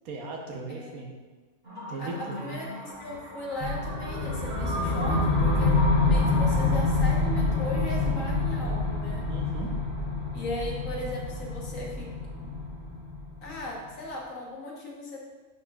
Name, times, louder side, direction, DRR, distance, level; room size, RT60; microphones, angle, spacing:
voice 1, 0.0-1.1 1.9-2.6 9.3-9.7, right 3 dB, 80° right, 0 dB, 1.3 m, -37 dB
voice 2, 0.7-1.0 2.0-9.3 10.3-12.6 13.4-15.2, left 1 dB, 65° left, -2 dB, 1.5 m, -37 dB
sound 1, 1.6-6.7, left 1 dB, 35° right, 1.6 m, -37 dB
sound 2, 3.6-13.7, left 2 dB, 30° left, 0.5 m, -27 dB
9.7 x 4.1 x 2.3 m, 1.3 s
omnidirectional pair, 1.5 m